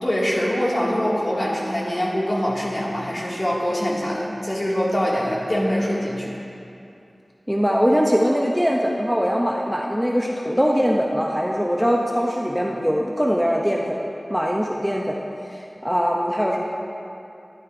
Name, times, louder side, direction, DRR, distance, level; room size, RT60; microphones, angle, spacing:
voice 1, 0.0-6.3, equal, 40° left, -5 dB, 2.3 m, -23 dB
voice 2, 7.5-14.0 14.3-15.2 15.5-16.6, equal, 5° right, -2 dB, 0.7 m, -21 dB
12.0 x 10.5 x 2.7 m, 2.7 s
wide cardioid pair, 45°, 0 cm